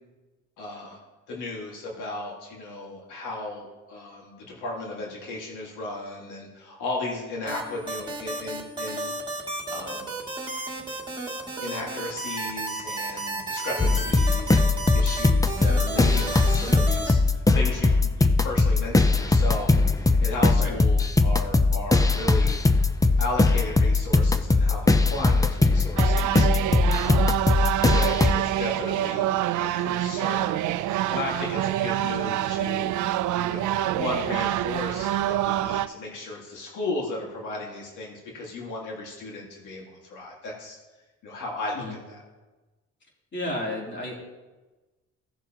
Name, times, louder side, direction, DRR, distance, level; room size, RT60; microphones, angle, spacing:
voice 1, 0.6-1.0 1.3-9.1 9.7-10.0 11.6-22.6 23.2-27.4 27.9-29.3 29.6-32.9 33.4-40.8 41.2-42.2, left 2 dB, 85° left, -2 dB, 2.0 m, -35 dB
sound 1, 7.5-17.1, right 2 dB, 15° right, 2.3 m, -32 dB
sound 2, 13.8-28.3, left 3 dB, 10° left, 0.6 m, -20 dB
sound 3, 26.0-35.9, right 13 dB, 75° right, 0.5 m, -26 dB
voice 2, 43.3-44.2, left 1 dB, 40° left, -2 dB, 3.0 m, -32 dB
16.5 x 6.8 x 2.9 m, 1.2 s
cardioid pair, 90°, 30 cm